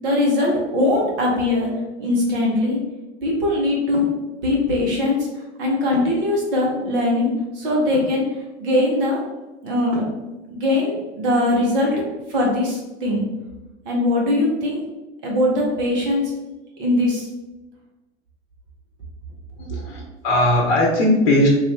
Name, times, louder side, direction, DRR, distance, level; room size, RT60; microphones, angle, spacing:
voice 1, 0.0-1.7 2.0-2.8 3.2-4.1 4.4-5.3 5.6-8.3 8.6-9.2 9.6-10.0 10.5-12.0 12.3-13.2 13.8-14.8 15.2-16.3 16.8-17.3, left 1 dB, 50° right, -2 dB, 1.3 m, -21 dB
sound 1, 3.9-4.2 5.9-6.3 7.9-8.2 9.9-10.3, left 1 dB, 5° right, 1.3 m, -33 dB
voice 2, 19.6-21.5, left 1 dB, 50° left, -1 dB, 0.9 m, -18 dB
2.9 x 2.6 x 3.5 m, 1.1 s
figure-of-eight pair, 90°, 36 cm